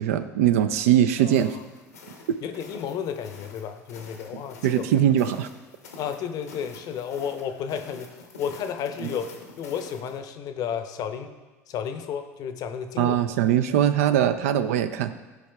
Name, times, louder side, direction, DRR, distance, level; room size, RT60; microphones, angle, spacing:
voice 1, 0.0-1.6 2.3-2.4 4.6-5.5 13.0-15.1, right 10 dB, 75° right, 11 dB, 0.4 m, -21 dB
voice 2, 1.2-1.7 2.4-5.0 6.0-11.3 11.7-13.2, left 8 dB, 50° left, 8 dB, 0.6 m, -32 dB
sound 1, 1.3-10.2, left 3 dB, 85° left, 0.9 m, -47 dB
11.5 x 4.8 x 2.3 m, 1.2 s
hypercardioid pair, 70°, 8 cm